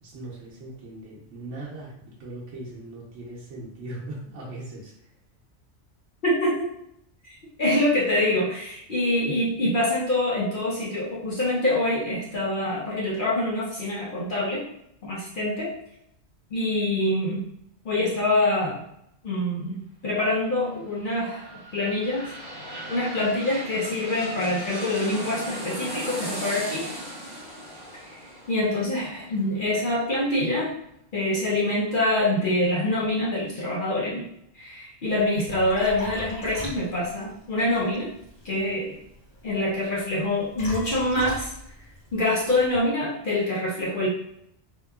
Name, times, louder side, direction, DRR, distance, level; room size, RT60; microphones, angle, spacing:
voice 1, 0.0-4.9, right 2 dB, 80° right, -4 dB, 1.0 m, -39 dB
voice 2, 6.2-6.7 7.2-14.7 15.0-15.7 16.5-17.4 17.8-18.8 19.2-19.8 20.0-22.3 22.9-26.9 28.1-28.2 28.5-30.7 31.1-34.3 34.5-38.1 38.4-39.0 39.4-41.5 42.1-44.1, left 1 dB, 55° left, -6 dB, 0.6 m, -25 dB
sound 1, 20.9-30.5 30.9-31.0, equal, 35° right, 0.4 m, -38 dB
Liquid, 35.1-42.8, equal, 70° left, 1.3 m, -40 dB
2.8 x 2.3 x 2.2 m, 0.76 s
omnidirectional pair, 1.2 m